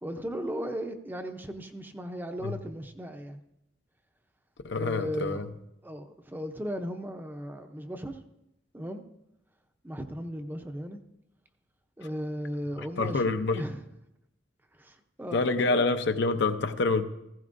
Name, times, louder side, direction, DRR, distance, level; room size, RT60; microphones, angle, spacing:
voice 1, 0.0-3.4 4.7-5.4 5.8-8.2 8.7-9.0 9.8-11.0 12.0-13.8 14.8-15.8, equal, 10° right, 0.6 m, -36 dB
voice 2, 4.6-5.5 12.8-13.6 15.3-17.0, left 3 dB, 65° left, 0.7 m, -27 dB
15.5 x 15.0 x 2.6 m
head